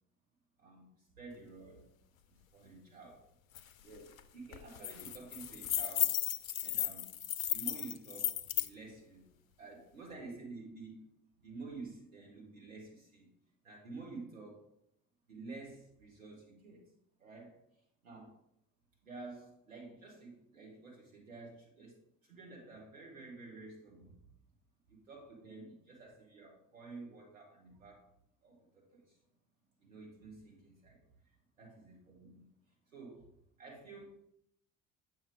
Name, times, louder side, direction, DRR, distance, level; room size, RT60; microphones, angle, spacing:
voice 1, 1.2-1.9 2.3-3.2 3.8-6.1 6.6-7.1 7.5-9.3 9.6-11.1 11.4-13.3 13.6-14.7 15.3-16.8 17.2-17.6 18.0-18.3 19.0-22.0 22.3-24.2 24.9-28.0 28.4-29.1 29.8-31.0 31.6-32.5 32.9-33.2 33.6-34.0, right 3 dB, 80° right, -2 dB, 1.6 m, -50 dB
sound 1, 3.5-3.6 4.0-4.2 4.5-8.7, left 11 dB, 80° left, 0.5 m, -35 dB
7.4 x 5.4 x 3.4 m, 0.74 s
figure-of-eight pair, 55°, 40 cm